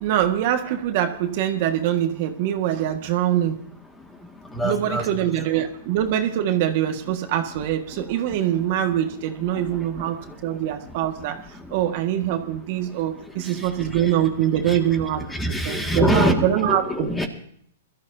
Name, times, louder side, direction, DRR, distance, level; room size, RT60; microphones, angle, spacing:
voice 1, 0.0-3.6 4.6-17.1, right 11 dB, 45° right, 5 dB, 1.6 m, -24 dB
voice 2, 4.5-5.0 14.7-14.8 15.4-17.3, left 1 dB, 5° left, 4 dB, 1.9 m, -23 dB
22.0 x 13.5 x 2.7 m, 0.65 s
hypercardioid pair, 140°, 0 cm